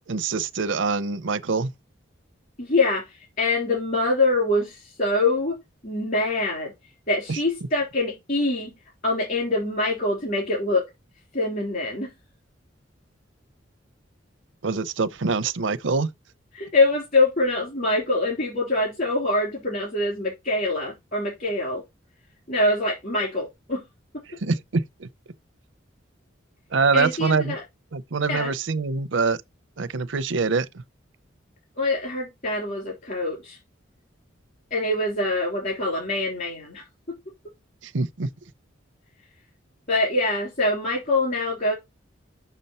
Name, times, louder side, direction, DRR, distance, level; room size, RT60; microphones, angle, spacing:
voice 1, 0.1-1.7 7.3-7.4 14.6-16.1 24.4-25.1 26.7-27.6 27.9-29.4 29.8-30.7 37.8-38.3, right 4 dB, 80° right, 0.7 m, -24 dB
voice 2, 2.6-6.7 7.1-8.7 9.0-10.8 11.3-12.1 16.5-21.8 22.5-23.8 26.9-27.6 28.3-28.5 31.8-33.6 34.7-37.2 39.9-41.7, left 2 dB, 50° left, 3.4 m, -24 dB
6.7 x 6.2 x 4.3 m
head